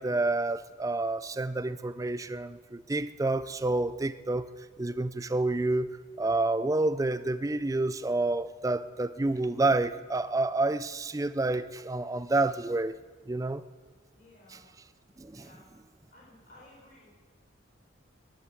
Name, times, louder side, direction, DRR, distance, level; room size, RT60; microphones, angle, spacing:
voice 1, 0.0-4.5 4.8-12.9 13.3-13.6 14.5-14.6 15.2-15.5, right 2 dB, 15° right, 14 dB, 0.3 m, -29 dB
voice 2, 14.1-14.6 15.3-15.8 16.1-17.2, left 1 dB, 40° left, -6 dB, 5.3 m, -56 dB
11.5 x 10.5 x 8.0 m, 1.5 s
head